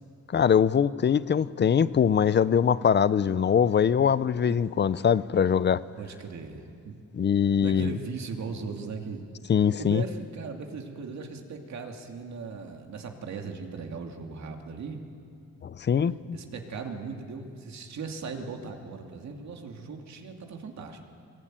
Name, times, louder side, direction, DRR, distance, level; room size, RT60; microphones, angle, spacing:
voice 1, 0.3-5.8 7.1-8.0 9.5-10.0 15.6-16.4, left 7 dB, 35° left, 17 dB, 0.6 m, -22 dB
voice 2, 6.0-7.0 7.6-9.2 9.8-15.0 16.3-21.0, right 4 dB, 60° right, 3 dB, 2.5 m, -38 dB
22.0 x 21.5 x 9.1 m, 2.4 s
cardioid pair, 135°, 32 cm